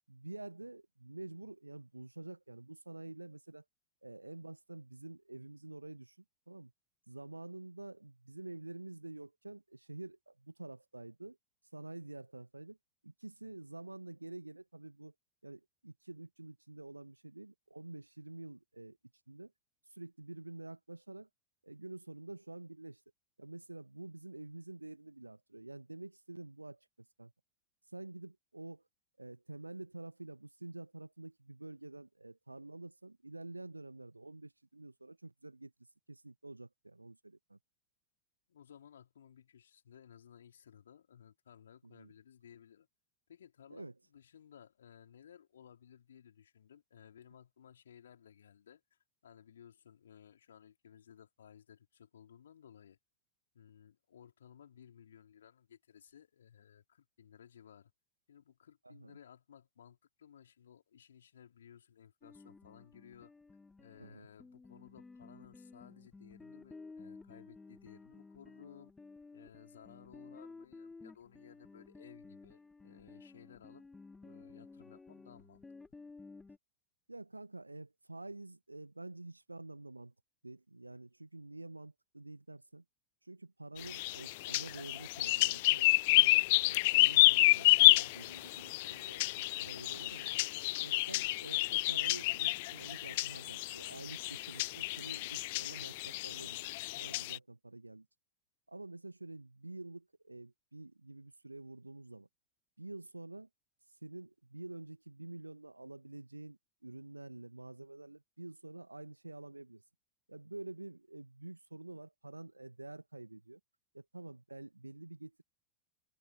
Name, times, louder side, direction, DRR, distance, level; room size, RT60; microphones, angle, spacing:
voice 1, 0.1-3.6 4.0-6.2 6.5-6.7 7.1-11.4 11.7-12.8 13.0-15.1 15.4-19.0 19.3-19.5 19.9-21.3 21.6-23.0 23.4-26.8 27.2-27.3 27.9-28.8 29.2-35.7 36.1-37.6 41.8-42.1 43.7-43.9 58.8-59.2 64.0-64.3 77.1-80.1 80.4-82.8 83.2-90.3 90.8-96.7 97.0-98.1 98.7-102.3 102.8-103.5 104.0-109.8 110.3-113.6 113.9-115.4, right 2 dB, 85° right, 1.7 m, -48 dB
voice 2, 38.5-42.9 43.3-53.0 53.5-57.9 58.3-63.3 63.8-68.9 69.3-73.8 74.2-75.6, left 9 dB, 65° left, 5.0 m, -58 dB
sound 1, 62.2-76.6, left 3 dB, 10° left, 2.3 m, -54 dB
sound 2, 83.8-97.4, left 21 dB, 50° left, 0.4 m, -29 dB
figure-of-eight pair, 90°, 0 cm